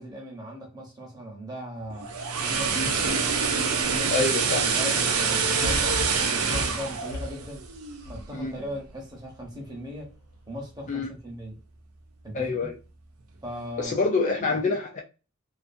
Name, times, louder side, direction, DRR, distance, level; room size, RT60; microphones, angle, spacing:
voice 1, 0.0-2.1 2.4-3.3 3.9-4.2 4.6-7.7 8.1-10.1 10.5-11.6 12.2-12.7 13.4-14.6, equal, 20° right, 0.8 m, -38 dB
sound 1, 1.9-8.1 8.4-8.6, right 5 dB, 90° right, 0.5 m, -26 dB
voice 2, 4.1-4.7 8.3-8.5 10.9-11.1 12.3-12.7 13.8-15.0, left 3 dB, 35° left, 0.3 m, -26 dB
sound 2, 5.6-8.9 9.4-9.5, left 1 dB, 90° left, 0.7 m, -35 dB
2.5 x 2.5 x 2.5 m
head